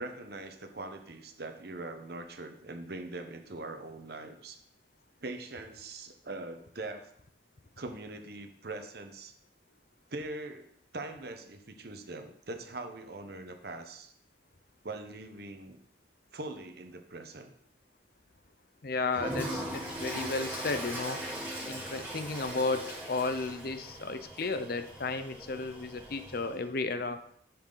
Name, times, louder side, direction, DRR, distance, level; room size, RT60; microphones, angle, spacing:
voice 1, 0.0-4.6 5.2-7.1 7.8-9.3 10.1-14.1 14.8-15.8 16.3-17.5 26.5-26.6, right 2 dB, 55° right, 6 dB, 1.0 m, -42 dB
voice 2, 18.8-21.2 21.7-27.2, left 3 dB, 55° left, 10 dB, 0.7 m, -33 dB
Toilet flush, 19.1-26.6, equal, 10° right, 2.4 m, -39 dB
10.5 x 7.3 x 4.0 m, 0.67 s
head